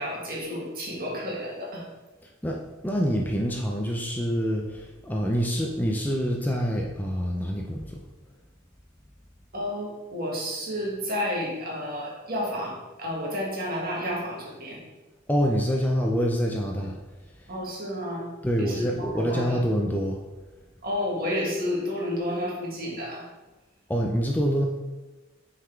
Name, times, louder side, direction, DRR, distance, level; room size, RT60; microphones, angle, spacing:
voice 1, 0.0-1.9 9.5-14.8 16.8-16.9 17.5-18.3 18.6-19.6 20.8-23.3, left 1 dB, 45° right, -3 dB, 1.7 m, -31 dB
voice 2, 2.2-8.0 15.3-17.0 17.4-17.5 18.4-20.2 23.9-24.6, equal, 10° left, 0 dB, 0.5 m, -26 dB
6.1 x 4.0 x 4.5 m, 1.2 s
head